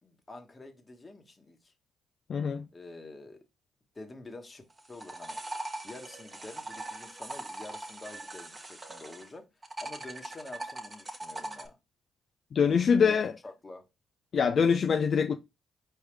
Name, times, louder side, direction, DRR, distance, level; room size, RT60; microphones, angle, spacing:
voice 1, 0.0-1.7 2.7-3.4 3.9-4.6 4.9-5.4 5.8-9.5 9.8-11.8 12.6-13.2 13.4-13.9, left 2 dB, 30° left, 1.3 m, -47 dB
voice 2, 2.3-2.7 12.5-13.3 14.3-15.4, left 6 dB, 55° left, 0.4 m, -24 dB
sound 1, 4.7-9.3 9.6-11.7, right 2 dB, 25° right, 1.2 m, -41 dB
4.6 x 3.4 x 3.3 m
supercardioid pair, 60°, 0 cm